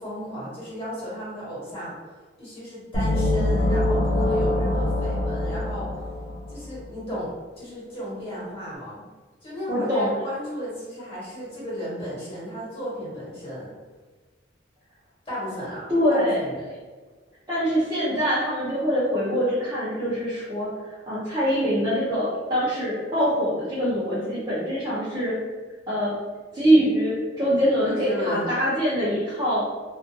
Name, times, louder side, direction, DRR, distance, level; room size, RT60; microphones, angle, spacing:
voice 1, 0.0-1.9 2.4-5.9 6.5-9.0 9.4-13.7 15.2-16.7 27.8-28.5, equal, 30° left, -8 dB, 1.2 m, -34 dB
sound 1, 2.9-6.7, left 1 dB, 85° left, 0.4 m, -24 dB
voice 2, 9.7-10.1 15.9-16.5 17.5-25.3 25.9-26.1 26.5-29.6, equal, 25° right, -11 dB, 0.6 m, -24 dB
2.4 x 2.4 x 2.6 m, 1.3 s
head